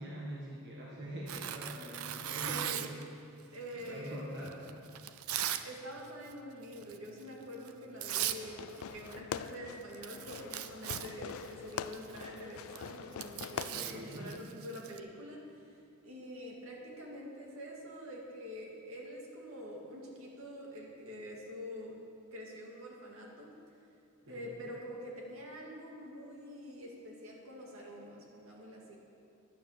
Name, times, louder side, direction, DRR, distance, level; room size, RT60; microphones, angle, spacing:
voice 1, 0.0-2.9 3.9-4.6 13.5-14.3 24.2-24.6, equal, 55° right, -4 dB, 1.6 m, -44 dB
Tearing, 1.3-3.0 3.8-5.7 6.0-6.3 6.7-7.0 7.7-7.8 8.0-8.4 8.7-9.2 9.5-9.6 9.8-15.0, right 11 dB, 90° right, 0.5 m, -39 dB
voice 2, 2.1-2.9 3.5-4.2 5.6-15.6 16.0-22.0 22.3-23.5 24.3-29.0, equal, 70° right, -2 dB, 2.1 m, -46 dB
Fireworks, 8.4-14.4, left 8 dB, 75° left, 0.4 m, -44 dB
10.5 x 9.3 x 6.6 m, 2.5 s
head